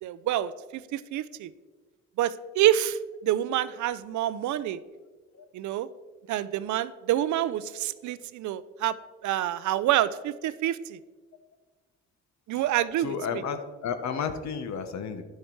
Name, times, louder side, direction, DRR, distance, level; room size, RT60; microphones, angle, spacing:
voice 1, 0.0-1.5 2.2-4.8 5.5-5.9 6.3-9.0 9.2-11.0 12.5-13.1, right 12 dB, 70° right, 17 dB, 0.5 m, -27 dB
voice 2, 13.0-15.2, left 6 dB, 65° left, 9 dB, 1.0 m, -32 dB
10.5 x 6.4 x 4.6 m, 1.3 s
cardioid pair, 90°, 30 cm